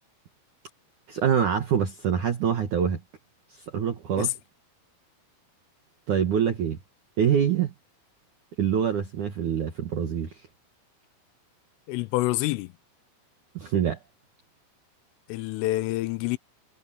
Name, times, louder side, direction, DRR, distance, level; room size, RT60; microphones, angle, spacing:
voice 1, 1.1-3.0 3.5-4.3 6.1-6.8 7.2-7.7 8.6-10.3 13.6-14.0, right 8 dB, 70° right, 1.9 m, -25 dB
voice 2, 11.9-12.7 15.3-16.4, left 18 dB, 85° left, 3.3 m, -27 dB
omnidirectional pair, 5.7 m